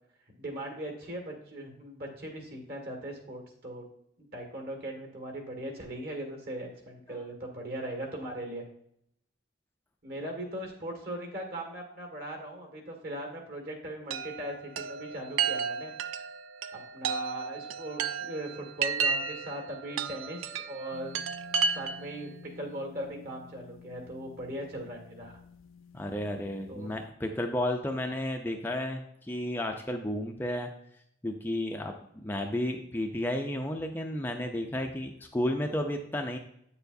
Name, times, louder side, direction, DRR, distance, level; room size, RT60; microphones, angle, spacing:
voice 1, 0.4-3.8 4.2-8.6 10.0-15.9 16.7-21.2 21.7-25.3 26.7-26.9, right 1 dB, 50° right, 2 dB, 1.8 m, -39 dB
Chime, 14.1-22.2, right 6 dB, 85° right, 0.4 m, -33 dB
sound 1, 20.9-27.1, left 6 dB, 85° left, 0.5 m, -52 dB
voice 2, 25.9-30.7 31.2-31.9 32.2-36.4, left 1 dB, 10° left, 3 dB, 0.4 m, -32 dB
8.8 x 6.8 x 2.6 m, 0.72 s
head